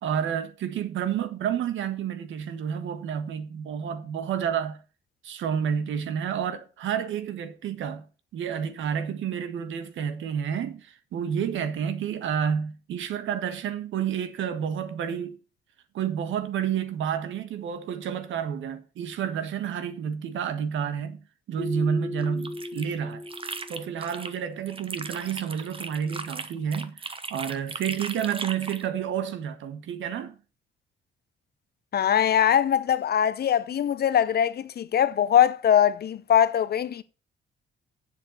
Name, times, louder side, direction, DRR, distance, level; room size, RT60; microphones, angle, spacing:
voice 1, 0.0-4.8 5.2-8.0 8.3-15.4 15.9-21.2 21.5-23.2 23.7-30.3, right 8 dB, 80° right, 1.5 m, -30 dB
Keyboard (musical), 21.6-24.4, left 2 dB, 5° left, 1.0 m, -37 dB
sound 1, 22.2-24.4 24.7-28.9, right 4 dB, 25° right, 1.1 m, -37 dB
voice 2, 31.9-37.0, left 9 dB, 55° left, 0.8 m, -22 dB
7.8 x 6.8 x 6.6 m
cardioid pair, 90°, 20 cm